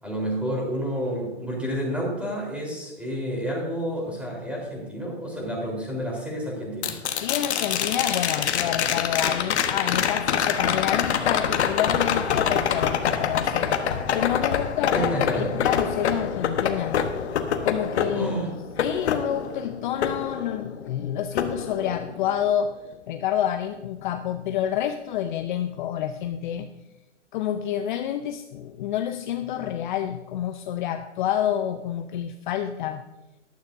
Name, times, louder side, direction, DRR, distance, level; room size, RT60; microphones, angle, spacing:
voice 1, 0.0-6.9 14.9-15.5 18.1-18.5, equal, 5° right, -3 dB, 3.9 m, -29 dB
sound 1, 6.8-20.9 21.4-22.4 24.6-24.7, left 8 dB, 65° left, 1.2 m, -26 dB
voice 2, 7.1-17.2 17.6-18.3 18.8-22.8 23.1-26.7 27.3-33.0, left 10 dB, 40° left, 8 dB, 0.6 m, -28 dB
14.5 x 12.0 x 2.7 m, 1.0 s
hypercardioid pair, 125°, 36 cm